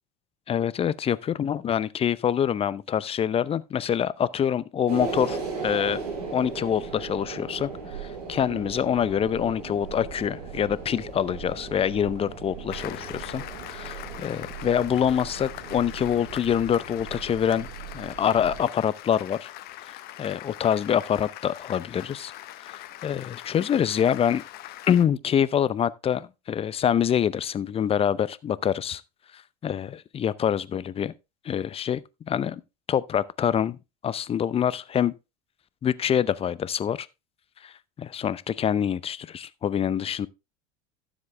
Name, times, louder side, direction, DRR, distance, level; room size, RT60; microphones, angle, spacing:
voice 1, 0.5-6.0 6.3-7.7 8.0-17.7 17.9-19.5 19.8-22.3 22.6-24.4 24.9-29.0 29.3-31.1 31.4-32.6 32.9-33.8 34.0-35.1 35.8-37.1 37.6-40.3, left 9 dB, 30° left, 0.7 m, -26 dB
sound 1, 4.9-18.6, right 5 dB, 75° right, 4.5 m, -37 dB
Applause, 12.7-25.0, left 15 dB, 55° left, 1.0 m, -42 dB
13.0 x 7.4 x 3.3 m
hypercardioid pair, 80°, 20 cm